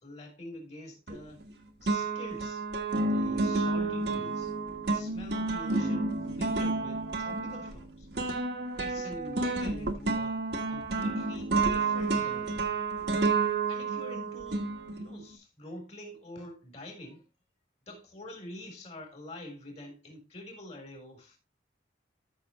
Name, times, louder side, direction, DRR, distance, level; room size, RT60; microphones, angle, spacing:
voice 1, 0.0-1.4 1.8-2.6 3.0-4.5 4.8-8.1 8.8-10.4 10.7-12.7 13.7-17.2 17.9-21.4, left 1 dB, 35° left, 3.6 m, -46 dB
sound 1, 1.1-1.5 1.9-15.3, right 3 dB, 65° right, 1.5 m, -30 dB
13.5 x 6.2 x 3.0 m
head